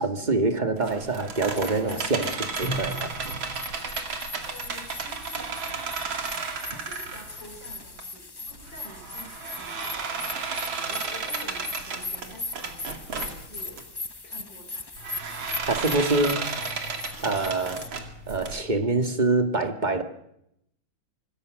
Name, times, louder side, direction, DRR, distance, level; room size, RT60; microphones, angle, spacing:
voice 1, 0.0-3.1 15.7-16.4 17.2-17.8 18.3-20.0, right 2 dB, 25° right, 7 dB, 1.8 m, -25 dB
sound 1, 0.8-8.0 8.5-13.8 15.0-18.6, right 4 dB, 90° right, 3.2 m, -33 dB
sound 2, 1.4-17.9, left 3 dB, 25° left, 0.5 m, -39 dB
voice 2, 4.5-6.3 6.6-13.8 14.2-14.9, left 1 dB, 65° left, -1 dB, 5.9 m, -48 dB
25.5 x 21.5 x 6.3 m, 0.80 s
omnidirectional pair, 2.1 m